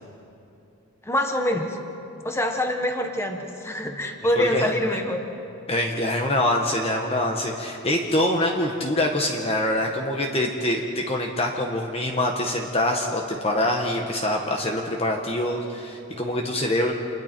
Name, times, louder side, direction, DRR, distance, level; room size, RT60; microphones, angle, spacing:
voice 1, 1.0-1.8 2.2-5.2, left 1 dB, 10° left, 3 dB, 1.5 m, -25 dB
voice 2, 4.4-4.7 5.7-16.9, left 1 dB, 25° left, 1 dB, 1.3 m, -25 dB
28.5 x 21.5 x 4.5 m, 2.8 s
head